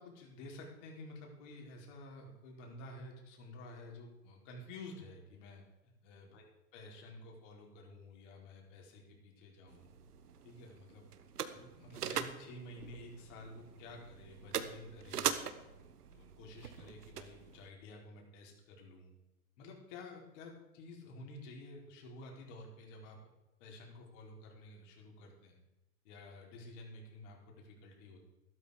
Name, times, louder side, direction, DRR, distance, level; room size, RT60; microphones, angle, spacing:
voice 1, 0.0-6.4 6.7-9.9 10.4-11.1 11.5-15.3 15.7-19.1 19.6-23.2 23.6-25.6 26.0-28.2, left 2 dB, 50° left, 0 dB, 4.6 m, -51 dB
sound 1, 9.7-17.7, right 8 dB, 85° right, 1.4 m, -42 dB
13.0 x 12.5 x 5.1 m, 0.98 s
hypercardioid pair, 125°, 45 cm